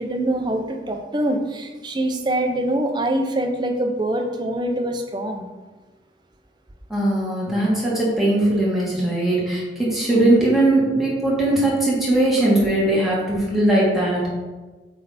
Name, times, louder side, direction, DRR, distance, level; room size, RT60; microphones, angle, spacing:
voice 1, 0.0-5.5, right 1 dB, 25° right, 4 dB, 0.6 m, -24 dB
voice 2, 6.9-14.3, right 1 dB, ahead, -7 dB, 1.9 m, -19 dB
8.1 x 3.4 x 4.2 m, 1.3 s
head